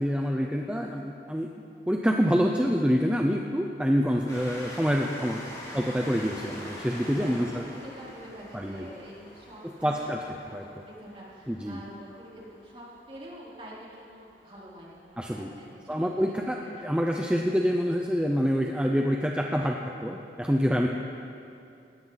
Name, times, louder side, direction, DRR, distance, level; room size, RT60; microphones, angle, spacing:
voice 1, 0.0-1.5 1.9-5.4 5.7-7.7 8.5-8.9 9.6-10.7 11.5-11.8 15.2-15.5 15.9-20.9, equal, 5° right, 1 dB, 0.7 m, -26 dB
Train, 4.3-15.4 16.2-16.3 16.5-16.6, left 1 dB, 20° left, 4.7 m, -45 dB
voice 2, 5.7-6.3 7.0-16.1 16.5-16.9, equal, 30° right, -6 dB, 3.8 m, -47 dB
20.5 x 17.0 x 4.1 m, 2.6 s
head